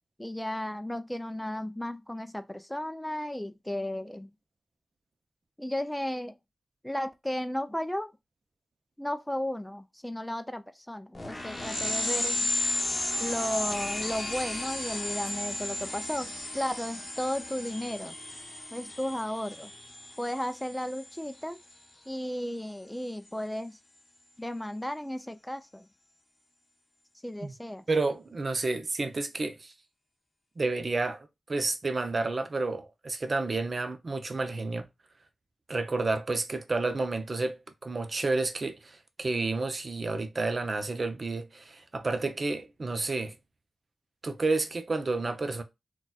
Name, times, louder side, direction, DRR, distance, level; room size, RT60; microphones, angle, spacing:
voice 1, 0.2-4.3 5.6-6.3 6.8-8.1 9.0-12.5 13.2-18.2 18.7-19.7 20.2-21.6 22.1-23.8 24.4-25.9 27.2-27.8, left 1 dB, 10° left, 0.3 m, -34 dB
sound 1, 11.1-21.3, left 2 dB, 35° left, 0.8 m, -34 dB
voice 2, 27.9-29.7 30.6-34.9 35.7-43.3 44.2-45.6, right 3 dB, 50° right, 0.6 m, -30 dB
3.9 x 2.3 x 2.3 m
cardioid pair, 60°, 0 cm